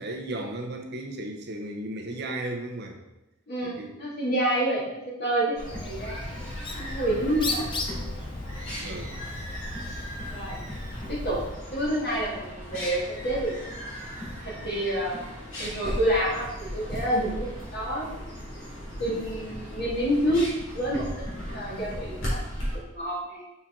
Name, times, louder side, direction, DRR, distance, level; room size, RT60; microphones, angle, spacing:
voice 1, 0.0-3.0 3.6-3.9 7.2-7.3 8.8-9.1, right 1 dB, 55° right, 2 dB, 0.8 m, -35 dB
voice 2, 3.5-6.2 6.8-7.7 8.7-8.8 10.3-10.6 11.1-11.4 11.7-13.5 14.4-15.2 15.6-18.1 19.0-20.5 20.7-22.4 22.9-23.4, right 1 dB, 50° left, -6 dB, 2.1 m, -28 dB
sound 1, 5.6-22.8, equal, 75° left, 2.2 m, -37 dB
Bird, 5.6-11.6, left 2 dB, 25° left, 0.5 m, -36 dB
5.9 x 4.3 x 3.7 m, 0.95 s
head